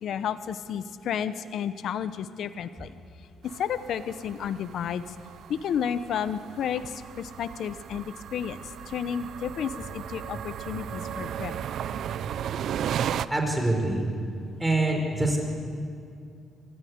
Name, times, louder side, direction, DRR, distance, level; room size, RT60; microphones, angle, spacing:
voice 1, 0.0-2.9 3.6-5.0 5.5-11.7, left 8 dB, 70° left, 13 dB, 0.9 m, -32 dB
sound 1, 3.4-13.3, right 9 dB, 70° right, 0.6 m, -35 dB
voice 2, 13.3-14.1 14.6-15.4, right 2 dB, 10° right, 1 dB, 4.7 m, -25 dB
26.0 x 14.0 x 9.7 m, 2.3 s
cardioid pair, 90°, 0 cm